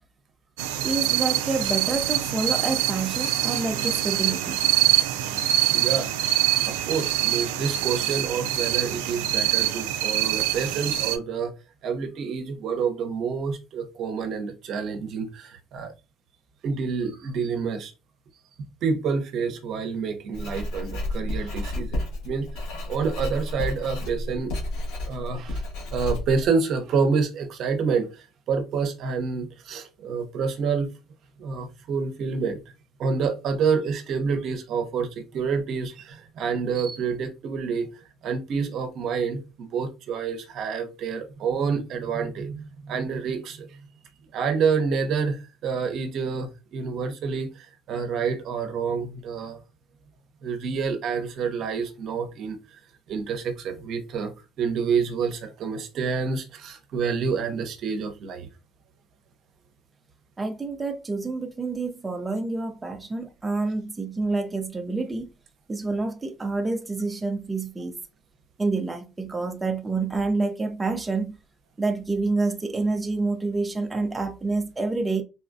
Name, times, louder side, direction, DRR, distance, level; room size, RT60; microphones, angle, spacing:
sound 1, 0.6-11.2, right 13 dB, 85° right, 0.3 m, -24 dB
voice 1, 0.8-4.6 60.4-65.3 65.7-68.0 68.6-71.3 71.8-75.2, right 3 dB, 20° right, 0.5 m, -28 dB
voice 2, 5.7-6.1 6.4-11.5 11.8-15.9 16.6-17.9 18.8-22.5 22.9-24.5 25.0-25.6 25.9-30.9 31.4-32.6 33.0-35.1 35.3-37.9 38.2-43.7 44.3-49.6 50.4-52.6 53.1-54.3 54.6-58.5, right 5 dB, 60° right, 0.8 m, -28 dB
Writing, 20.3-26.5, left 1 dB, 75° left, 1.7 m, -31 dB
4.1 x 2.2 x 2.5 m
supercardioid pair, 80°, 0 cm